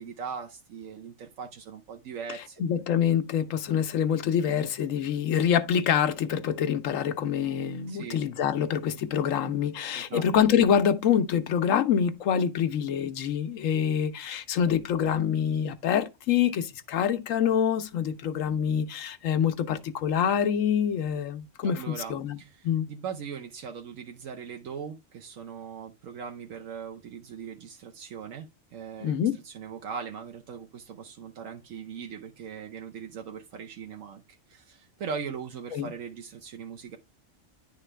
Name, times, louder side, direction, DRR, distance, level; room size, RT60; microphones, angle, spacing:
voice 1, 0.0-2.6 7.9-8.2 9.9-10.2 21.6-29.2 29.4-37.0, right 6 dB, 85° right, 1.1 m, -40 dB
voice 2, 2.6-22.4 22.6-22.8 29.0-29.3 35.7-35.9, left 8 dB, 85° left, 1.1 m, -26 dB
9.9 x 3.8 x 3.2 m
omnidirectional pair, 1.3 m